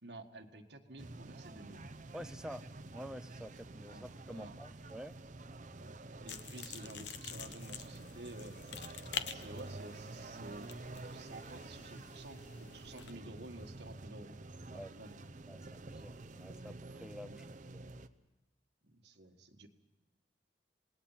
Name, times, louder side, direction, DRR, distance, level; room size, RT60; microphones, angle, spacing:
voice 1, 0.0-1.8 3.9-4.5 5.8-9.0 9.3-14.4 14.7-15.2 17.2-17.4 18.8-19.7, right 2 dB, 70° right, 4 dB, 1.8 m, -52 dB
sound 1, 1.0-18.1, right 2 dB, 45° right, 0.8 m, -49 dB
voice 2, 2.1-2.6 2.9-5.1 14.7-14.9 15.5-17.5, equal, 5° right, 9 dB, 0.6 m, -48 dB
sound 2, 6.3-13.1, left 7 dB, 80° left, 1.0 m, -47 dB
27.5 x 19.0 x 5.8 m, 1.1 s
head